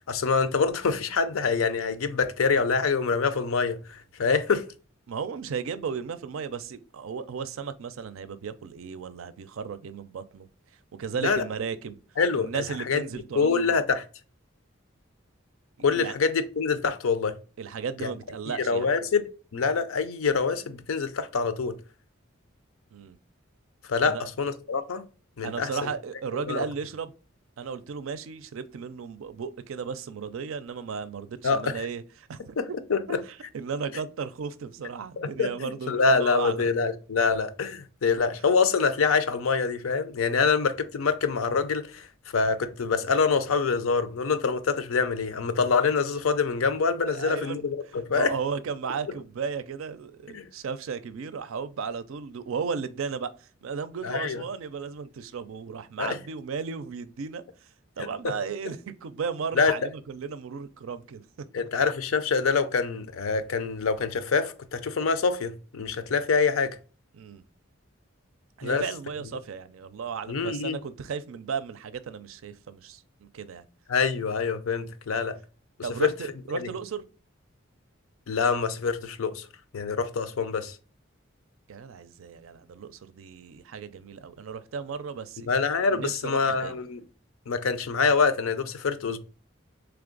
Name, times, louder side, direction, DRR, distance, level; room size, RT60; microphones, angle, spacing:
voice 1, 0.1-4.6 11.2-11.4 12.2-13.0 13.3-14.0 15.8-17.4 18.0-18.1 18.6-19.3 19.5-21.8 23.9-25.0 25.4-25.9 26.3-26.6 31.4-31.8 32.6-33.2 35.2-42.1 42.3-48.3 50.3-50.5 54.0-54.4 56.0-56.2 59.6-59.7 61.5-66.8 68.6-68.8 70.3-70.8 73.9-75.4 76.0-76.1 76.5-76.7 78.3-79.5 79.7-80.8 85.5-87.0 87.5-89.2, left 5 dB, 85° left, 0.5 m, -25 dB
voice 2, 5.1-10.5 11.0-12.0 12.3-13.8 15.8-16.1 17.6-18.9 22.9-23.2 24.0-24.3 25.4-27.1 27.6-32.6 33.1-36.7 47.1-47.7 48.1-57.4 58.0-61.2 61.6-61.7 67.1-67.4 68.6-73.6 75.8-77.0 81.7-85.5 85.9-86.8, right 6 dB, 80° right, 0.4 m, -35 dB
3.4 x 3.4 x 3.8 m
head